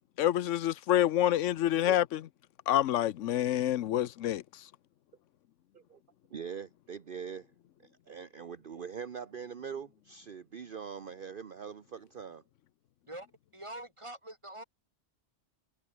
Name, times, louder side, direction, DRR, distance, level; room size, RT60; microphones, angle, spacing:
voice 1, 0.2-2.2 2.7-4.4, left 12 dB, 90° left, 1.0 m, -27 dB
voice 2, 6.3-7.5 7.8-12.4, right 7 dB, 50° right, 1.0 m, -42 dB
voice 3, 13.5-14.6, right 1 dB, 25° right, 3.8 m, -44 dB
omnidirectional pair, 1.2 m